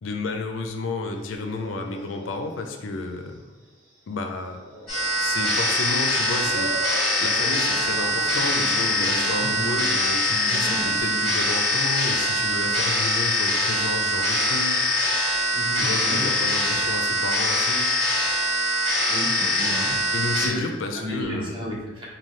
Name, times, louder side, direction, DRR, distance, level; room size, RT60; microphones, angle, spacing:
voice 1, 0.0-3.4 4.1-4.6 5.2-6.7 7.2-14.9 15.8-17.9 20.1-21.6, left 3 dB, 70° left, 5 dB, 0.4 m, -31 dB
sound 1, 1.1-2.7 3.1-3.2 4.3-11.0, right 1 dB, 80° right, 1.0 m, -40 dB
sound 2, 4.9-20.5, left 1 dB, ahead, 1.3 m, -23 dB
voice 2, 15.5-16.3 19.1-20.0 20.4-20.6 20.9-22.0, equal, 25° right, -5 dB, 0.9 m, -32 dB
5.3 x 2.2 x 3.1 m, 1.2 s
head